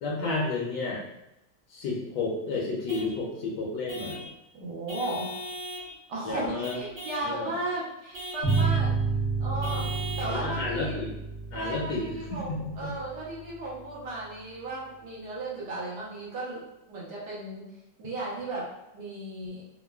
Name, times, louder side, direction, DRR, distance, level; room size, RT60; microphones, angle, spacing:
voice 1, 0.0-1.0 1.7-4.2 6.2-6.7 7.2-7.5 10.3-11.1 11.5-12.0 12.3-12.6, left 3 dB, 75° left, -2 dB, 1.1 m, -31 dB
Vehicle horn car horn honking / Truck, 2.9-3.1 3.9-4.3 4.9-5.9 6.6-7.3 8.1-8.8 9.6-10.4, right 1 dB, 55° right, 1.4 m, -38 dB
voice 2, 4.5-5.3 6.1-8.9 9.4-9.9 10.2-11.0 11.5-16.6 16.9-17.6 18.0-18.6 18.9-19.6, right 2 dB, 75° right, -6 dB, 1.5 m, -35 dB
sound 1, 8.4-13.6, right 4 dB, 40° right, 0.7 m, -30 dB
3.6 x 2.1 x 2.2 m, 0.90 s
omnidirectional pair, 1.8 m